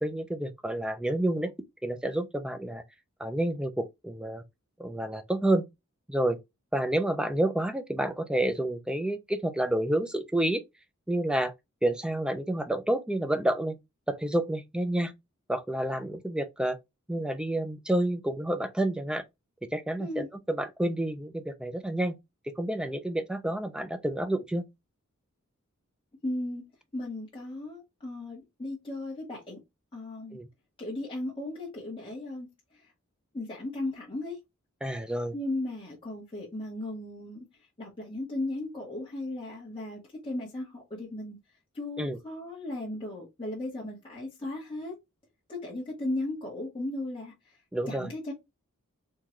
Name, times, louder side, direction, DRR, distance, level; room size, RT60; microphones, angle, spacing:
voice 1, 0.0-1.5 1.8-2.8 3.2-4.4 4.8-5.7 6.1-6.4 6.7-10.6 11.1-11.5 11.8-13.8 14.1-15.1 15.5-16.8 17.1-19.2 19.7-22.2 22.5-24.7 30.3-30.5 34.8-35.3 42.0-42.2 47.7-48.1, right 1 dB, 5° right, 0.3 m, -29 dB
voice 2, 26.2-26.6 26.9-29.6 29.9-30.4 30.8-32.5 32.7-32.9 33.3-34.4 35.3-37.5 37.8-41.4 41.7-44.9 45.5-47.6 47.9-48.3, left 2 dB, 25° left, 1.0 m, -36 dB
3.6 x 2.2 x 3.0 m
head